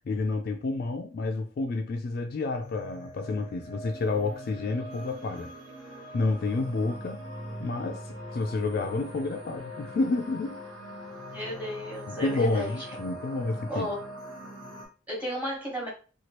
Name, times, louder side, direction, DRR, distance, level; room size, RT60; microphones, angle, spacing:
voice 1, 0.1-5.5 6.1-7.2 7.6-8.1 8.3-10.6 12.1-13.9, left 3 dB, 50° left, 0.3 m, -29 dB
sound 1, 2.6-14.9, equal, 70° right, 1.1 m, -42 dB
voice 2, 11.3-12.7 13.7-14.0 15.1-15.9, equal, 10° right, 1.2 m, -33 dB
2.9 x 2.3 x 2.9 m
head